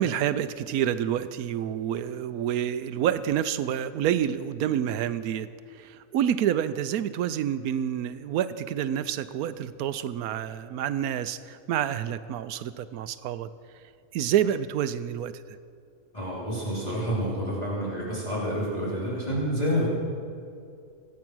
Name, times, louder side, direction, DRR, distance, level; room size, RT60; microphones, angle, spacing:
voice 1, 0.0-13.5 14.1-15.4, right 10 dB, 90° right, 13 dB, 1.1 m, -28 dB
voice 2, 16.1-19.9, equal, 25° left, -8 dB, 3.7 m, -28 dB
25.0 x 8.6 x 6.1 m, 2.4 s
omnidirectional pair, 1.5 m